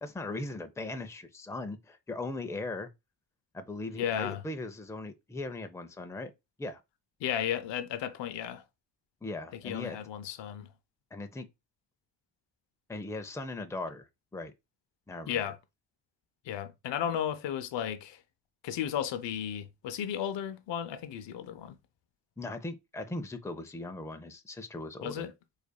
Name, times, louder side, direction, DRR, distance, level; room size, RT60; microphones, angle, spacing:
voice 1, 0.0-2.9 3.5-6.3 6.6-6.8 9.2-10.0 11.1-11.5 12.9-14.1 14.3-14.5 15.1-15.4 22.4-25.3, left 2 dB, 5° left, 0.5 m, -39 dB
voice 2, 3.9-4.4 7.2-8.6 9.5-10.7 15.3-15.6 16.4-18.2 18.6-21.8 25.0-25.3, left 9 dB, 80° left, 0.6 m, -34 dB
4.6 x 2.6 x 2.2 m
cardioid pair, 60°, 43 cm